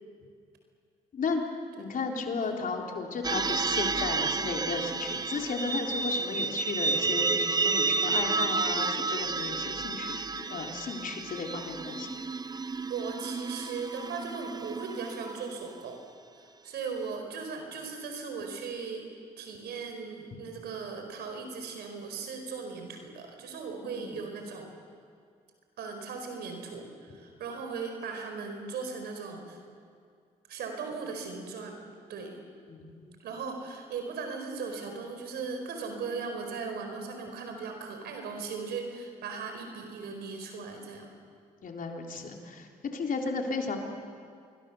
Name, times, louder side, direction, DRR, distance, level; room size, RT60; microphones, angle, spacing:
voice 1, 1.8-12.1 23.9-24.2 32.7-33.1 41.6-43.8, left 4 dB, 55° left, 1 dB, 3.7 m, -34 dB
sound 1, 3.2-15.8, right 4 dB, 25° right, 0.6 m, -31 dB
voice 2, 12.8-16.0 16.3-24.7 25.8-29.6 30.5-31.8 32.1-32.4 33.2-41.1, right 5 dB, 80° right, 4 dB, 4.7 m, -38 dB
26.0 x 22.5 x 7.0 m, 2.2 s
supercardioid pair, 60°, 17 cm